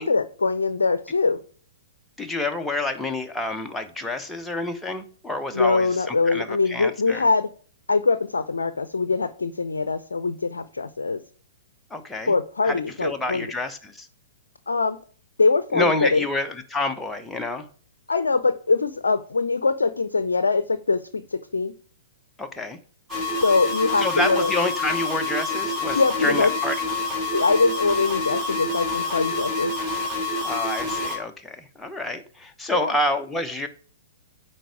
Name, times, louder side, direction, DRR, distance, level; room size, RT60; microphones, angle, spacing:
voice 1, 0.0-1.4 5.5-7.5 7.9-11.2 12.3-13.5 14.7-15.0 15.4-16.2 18.1-21.0 21.3-21.7 23.4-24.5 25.9-26.5 27.3-29.7 32.7-33.0, left 4 dB, 75° left, 13 dB, 0.5 m, -22 dB
voice 2, 2.2-7.3 11.9-12.3 12.6-14.1 15.7-17.7 22.4-22.8 24.0-26.8 30.4-33.7, left 2 dB, 5° left, 5 dB, 0.9 m, -28 dB
sound 1, 23.1-31.2, left 3 dB, 10° right, 2.4 m, -27 dB
9.2 x 4.4 x 4.9 m, 0.43 s
figure-of-eight pair, 115°, 0 cm